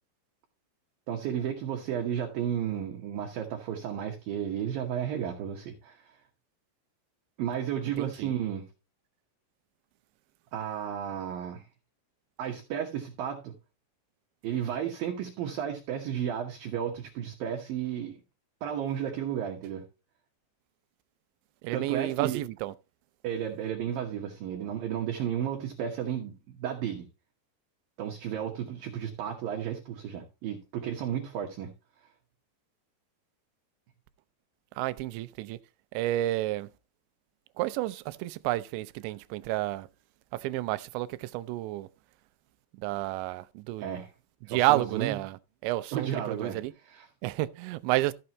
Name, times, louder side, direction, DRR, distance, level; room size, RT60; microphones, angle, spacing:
voice 1, 1.1-6.2 7.4-8.7 10.5-11.6 12.4-13.5 14.4-18.2 18.6-19.8 21.7-22.4 23.2-27.1 28.0-31.7 43.8-44.1 44.5-45.2 45.9-46.6 46.9-47.1, right 9 dB, 65° right, 2.5 m, -33 dB
voice 2, 8.0-8.3 21.6-22.7 34.8-35.6 35.9-36.7 37.6-39.9 40.3-41.9 42.8-43.9 44.5-45.4 45.6-46.7 47.2-48.1, right 16 dB, 90° right, 3.0 m, -30 dB
14.0 x 6.8 x 2.9 m
omnidirectional pair, 5.1 m